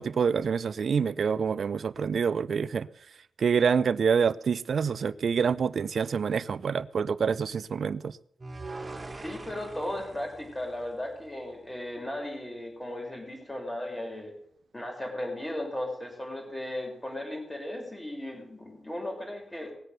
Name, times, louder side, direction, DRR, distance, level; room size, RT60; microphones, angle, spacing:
voice 1, 0.0-2.9 3.4-8.2, right 6 dB, 65° right, 0.6 m, -26 dB
sound 1, 8.4-11.6, right 2 dB, 30° right, 2.6 m, -43 dB
voice 2, 9.1-14.3 14.7-19.7, left 1 dB, 15° left, 6.2 m, -36 dB
19.0 x 7.9 x 6.8 m
cardioid pair, 70°, 0 cm